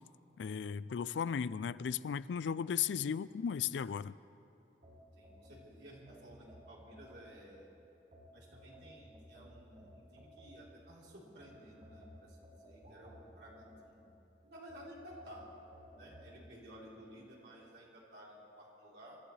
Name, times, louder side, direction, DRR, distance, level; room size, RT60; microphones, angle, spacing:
voice 1, 0.4-4.1, left 7 dB, 90° left, 18 dB, 0.4 m, -36 dB
sound 1, 4.8-7.6 8.1-10.9 11.4-14.2 14.7-16.3, equal, 55° right, 3.4 m, -57 dB
voice 2, 5.2-7.7 8.3-14.1 14.4-15.5 16.0-19.2, equal, 70° right, -5 dB, 3.9 m, -55 dB
27.0 x 13.5 x 3.3 m, 2.7 s
head